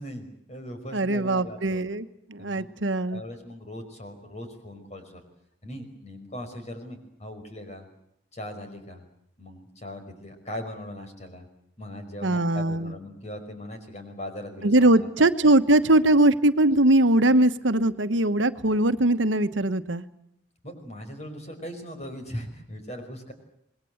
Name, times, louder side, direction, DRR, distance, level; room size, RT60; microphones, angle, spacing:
voice 1, 0.0-1.8 2.4-2.7 3.1-5.2 5.6-7.9 8.3-9.0 9.4-11.5 11.8-15.3 20.6-23.3, equal, 35° left, 6 dB, 5.4 m, -39 dB
voice 2, 0.9-3.2 12.2-12.9 14.6-20.0, right 1 dB, 85° right, 11 dB, 1.3 m, -21 dB
26.5 x 21.0 x 8.0 m, 0.75 s
head